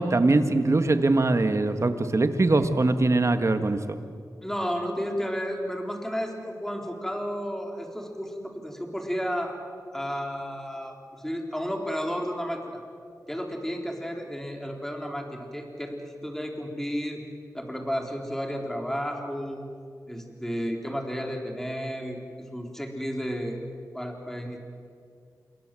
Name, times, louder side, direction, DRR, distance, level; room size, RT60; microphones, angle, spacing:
voice 1, 0.0-4.0, right 2 dB, 45° right, 9 dB, 1.7 m, -22 dB
voice 2, 4.4-9.6 9.9-12.7 13.3-17.2 17.5-19.6 20.1-23.6 23.9-24.6, equal, 5° left, 2 dB, 4.0 m, -32 dB
27.0 x 22.5 x 7.8 m, 2.2 s
wide cardioid pair, 75°, 7 cm